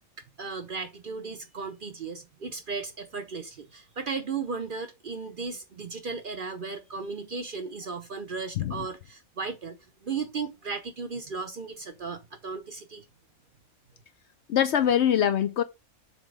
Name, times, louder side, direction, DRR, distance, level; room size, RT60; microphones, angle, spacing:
voice 1, 0.2-13.1, right 4 dB, 50° right, 0.7 m, -36 dB
voice 2, 14.5-15.6, left 9 dB, 65° left, 0.7 m, -23 dB
7.3 x 2.9 x 4.8 m
omnidirectional pair, 1.4 m